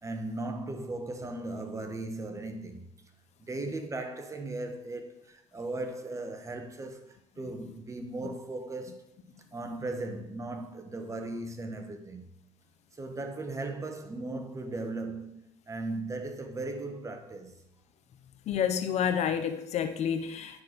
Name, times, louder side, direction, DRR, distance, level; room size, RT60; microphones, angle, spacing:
voice 1, 0.0-2.9 3.4-9.2 9.5-12.3 12.9-17.6, right 2 dB, 20° right, 1.2 m, -37 dB
voice 2, 18.5-20.6, left 8 dB, 55° left, 0.8 m, -29 dB
9.7 x 6.1 x 4.0 m
cardioid pair, 100°, 14 cm